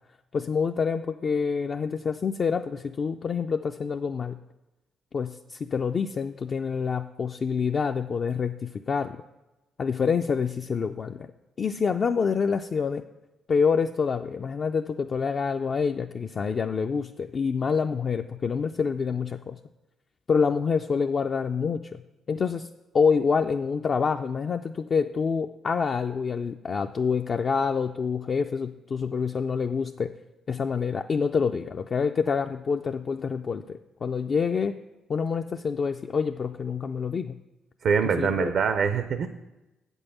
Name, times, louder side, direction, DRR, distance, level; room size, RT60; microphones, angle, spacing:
voice 1, 0.3-4.4 5.1-9.2 9.8-11.3 11.6-13.0 13.5-19.6 20.3-22.0 22.3-22.7 22.9-30.1 30.5-34.8 35.1-37.4 38.0-38.5, left 5 dB, 45° left, 5 dB, 0.3 m, -27 dB
voice 2, 37.8-39.3, right 6 dB, 65° right, 10 dB, 0.5 m, -24 dB
7.9 x 5.4 x 6.9 m, 1.0 s
cardioid pair, 90°, 0 cm